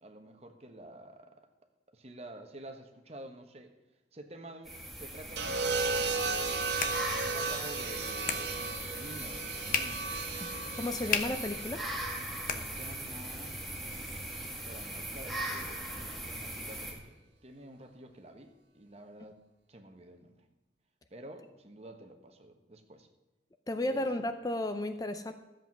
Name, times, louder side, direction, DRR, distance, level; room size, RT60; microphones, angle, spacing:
voice 1, 0.0-1.3 1.9-3.7 4.1-6.6 7.1-10.2 12.4-13.6 14.2-17.1 17.4-19.4 19.7-20.4 21.1-23.1 23.9-24.0, right 1 dB, 35° right, 5 dB, 1.3 m, -49 dB
sound 1, 4.6-16.9, right 1 dB, ahead, 2.2 m, -39 dB
sound 2, 5.4-13.5 14.7-15.1, right 4 dB, 80° right, 1.3 m, -36 dB
sound 3, 6.3-13.3, left 6 dB, 50° left, 1.0 m, -39 dB
voice 2, 10.8-11.8 23.7-25.3, left 1 dB, 20° left, 8 dB, 0.5 m, -33 dB
13.0 x 7.9 x 6.0 m, 1.1 s
head